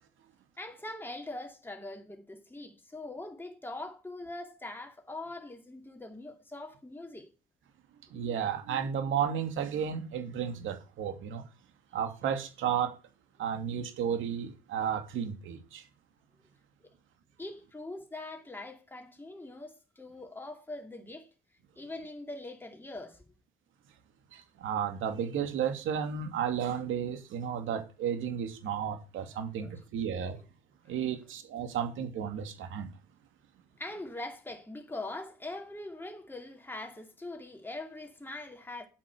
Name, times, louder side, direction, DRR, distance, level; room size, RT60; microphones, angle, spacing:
voice 1, 0.6-7.3 17.4-21.3 21.8-23.3 29.6-29.7 33.8-38.9, left 2 dB, 10° left, 2.6 m, -42 dB
voice 2, 8.1-11.4 11.9-12.9 13.4-15.8 24.3-30.4 30.9-32.9, right 8 dB, 80° right, 2.6 m, -33 dB
10.5 x 8.4 x 6.8 m
cardioid pair, 90°, 20 cm